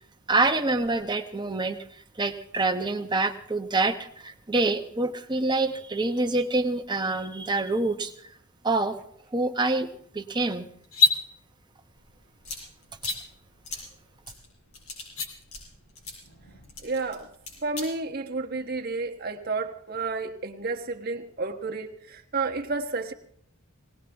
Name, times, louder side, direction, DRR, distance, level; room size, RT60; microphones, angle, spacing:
voice 1, 0.3-1.8 2.2-8.1 8.6-9.0 9.3-9.9 10.1-10.7, right 2 dB, 20° right, 6 dB, 0.9 m, -26 dB
sound 1, 10.8-11.2 12.9-13.2 15.0-15.3, left 3 dB, 70° left, 2.6 m, -22 dB
sound 2, 12.0-17.9, left 3 dB, 90° left, 6.7 m, -43 dB
voice 2, 16.8-17.3 17.6-23.1, right 3 dB, 45° right, 3 dB, 1.2 m, -31 dB
19.5 x 18.5 x 3.5 m, 0.66 s
head